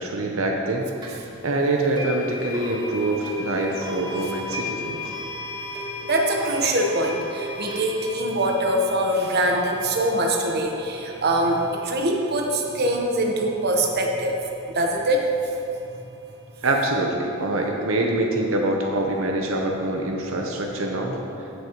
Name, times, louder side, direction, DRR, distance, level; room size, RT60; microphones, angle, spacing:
voice 1, 0.0-5.1 16.6-21.5, right 2 dB, 80° right, 1 dB, 0.8 m, -25 dB
sound 1, 1.0-1.1 2.0-12.9, left 1 dB, 20° right, 1.3 m, -36 dB
voice 2, 6.1-14.4 14.7-15.2, right 1 dB, 50° right, 1 dB, 1.0 m, -23 dB
15.5 x 6.4 x 3.0 m, 2.8 s
head